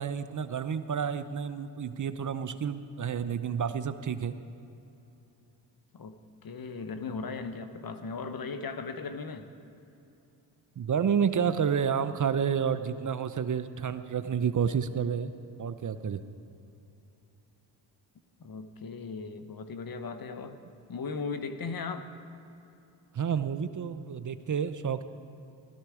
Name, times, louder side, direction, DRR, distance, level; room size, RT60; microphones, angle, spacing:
voice 1, 0.0-4.4 10.8-15.3 15.6-16.2 23.1-25.0, right 7 dB, 40° right, 12 dB, 0.7 m, -30 dB
voice 2, 5.9-9.5 18.4-20.6 20.9-22.1, left 4 dB, 50° left, 9 dB, 1.2 m, -37 dB
16.5 x 13.0 x 4.9 m, 2.8 s
supercardioid pair, 50°, 46 cm